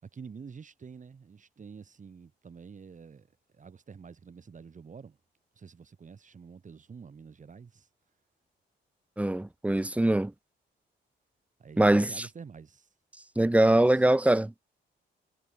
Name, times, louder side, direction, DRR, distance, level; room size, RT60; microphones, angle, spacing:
voice 1, 0.0-3.3 3.5-5.2 5.6-7.9 11.6-12.9 13.9-14.1, right 5 dB, 40° right, 5.2 m, -48 dB
voice 2, 9.2-10.3 11.8-12.3 13.4-14.5, right 1 dB, 5° right, 0.5 m, -23 dB
cardioid pair, 90°, 20 cm